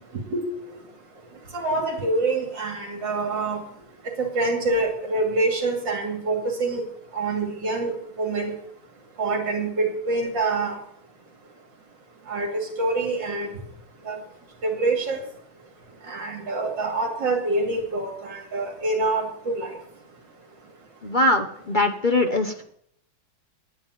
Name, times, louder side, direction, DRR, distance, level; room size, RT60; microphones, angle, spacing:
voice 1, 1.5-3.6 4.2-6.8 7.1-8.5 9.2-10.7 12.3-13.5 14.1-14.2 14.6-15.2 16.1-19.7, right 2 dB, 65° right, 3 dB, 3.2 m, -26 dB
voice 2, 21.0-22.6, left 2 dB, 50° left, 4 dB, 0.5 m, -22 dB
10.0 x 9.2 x 9.3 m, 0.68 s
omnidirectional pair, 2.2 m